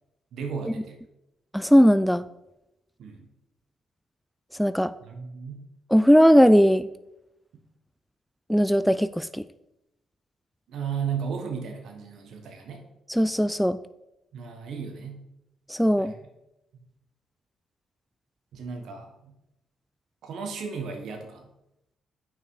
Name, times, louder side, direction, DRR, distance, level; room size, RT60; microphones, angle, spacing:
voice 1, 0.3-1.0 3.0-3.3 5.0-5.6 10.7-12.8 14.3-15.2 16.0-16.2 18.5-19.3 20.2-21.5, right 6 dB, 70° right, 4 dB, 1.4 m, -35 dB
voice 2, 1.5-2.2 4.6-4.9 5.9-6.9 8.5-9.4 13.1-13.8 15.7-16.1, equal, ahead, 13 dB, 0.3 m, -18 dB
8.9 x 6.1 x 4.8 m, 0.90 s
cardioid pair, 90°, 0 cm